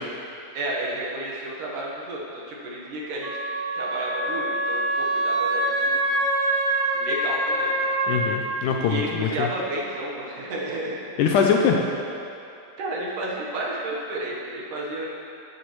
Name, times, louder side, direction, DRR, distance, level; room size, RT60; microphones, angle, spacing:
voice 1, 0.5-3.3 3.8-6.0 6.9-7.7 8.8-11.2 12.8-15.1, right 1 dB, 70° right, -4 dB, 2.7 m, -31 dB
Wind instrument woodwind instrument, 3.2-8.3, right 1 dB, 85° right, 0.9 m, -25 dB
voice 2, 8.1-9.5 11.2-11.8, left 6 dB, 80° left, 1 dB, 1.9 m, -22 dB
15.5 x 8.3 x 3.1 m, 2.7 s
omnidirectional pair, 4.0 m